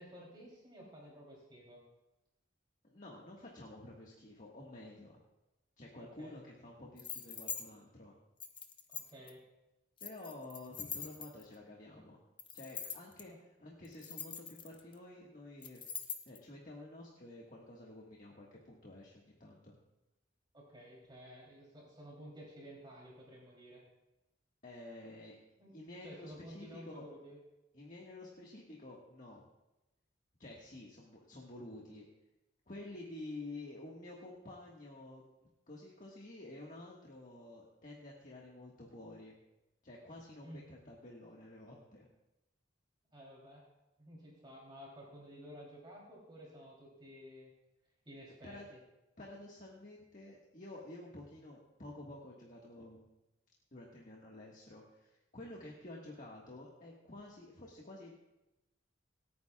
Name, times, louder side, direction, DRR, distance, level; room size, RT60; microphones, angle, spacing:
voice 1, 0.0-1.8 6.0-6.4 8.9-9.4 13.2-13.3 20.5-23.8 25.6-25.7 26.0-27.4 40.4-40.6 43.1-43.7 44.0-47.5 48.0-48.6, equal, 25° right, -4 dB, 3.2 m, -53 dB
voice 2, 2.8-5.2 5.8-8.1 10.0-12.2 12.5-15.8 16.2-19.7 24.6-25.3 25.7-27.1 27.7-29.5 30.4-32.1 32.7-35.2 35.7-39.4 39.8-42.1 48.4-48.7 49.2-53.0 53.7-58.3, left 2 dB, 45° left, -3 dB, 1.6 m, -50 dB
sound 1, 7.0-7.6 8.4-9.3 10.0-11.5 12.4-13.2 13.8-14.9 15.6-16.4, left 6 dB, 25° left, 0.9 m, -43 dB
28.0 x 9.5 x 2.4 m, 0.97 s
head